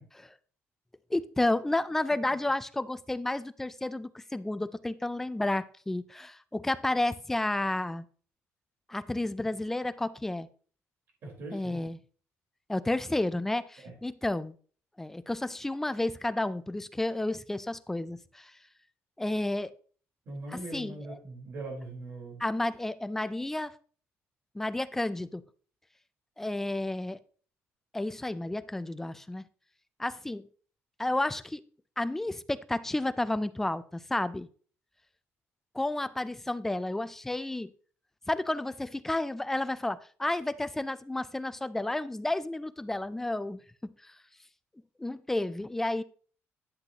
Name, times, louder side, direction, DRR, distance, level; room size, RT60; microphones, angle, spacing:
voice 1, 1.1-8.0 8.9-10.5 11.5-12.0 12.7-14.5 15.0-18.5 19.2-19.7 20.5-21.2 22.4-23.7 24.6-25.4 26.4-27.2 27.9-29.4 30.0-30.4 31.0-31.6 32.0-34.5 35.8-37.7 38.3-43.6 45.0-46.0, left 2 dB, 5° left, 14 dB, 0.4 m, -31 dB
voice 2, 11.2-11.8 13.8-13.9 20.3-22.4, right 2 dB, 50° right, 0 dB, 4.2 m, -41 dB
10.5 x 8.0 x 2.9 m, 0.43 s
cardioid pair, 160°, 5 cm